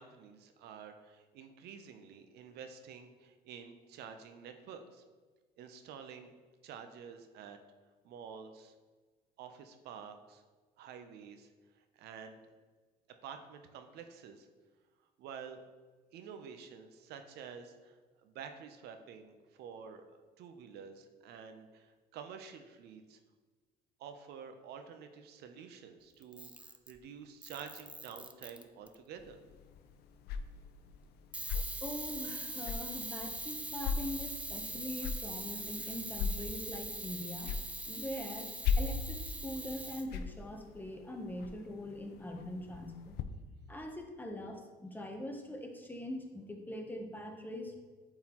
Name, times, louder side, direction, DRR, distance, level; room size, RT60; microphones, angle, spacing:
voice 1, 0.0-5.0 5.6-6.3 6.6-7.6 8.0-8.7 9.4-10.4 10.8-12.4 13.2-14.5 15.2-15.6 16.1-20.0 20.4-23.2 24.0-29.4, right 7 dB, 75° right, 7 dB, 0.6 m, -49 dB
Camera, 26.2-27.0 27.4-28.9 31.3-40.1, right 2 dB, 10° right, 0.3 m, -42 dB
sound 1, 29.2-43.2, left 5 dB, 75° left, 0.5 m, -40 dB
voice 2, 31.8-37.5 37.9-43.2 43.7-47.8, left 1 dB, 10° left, 3 dB, 0.7 m, -42 dB
8.6 x 3.9 x 2.9 m, 1.4 s
cardioid pair, 110°, 17 cm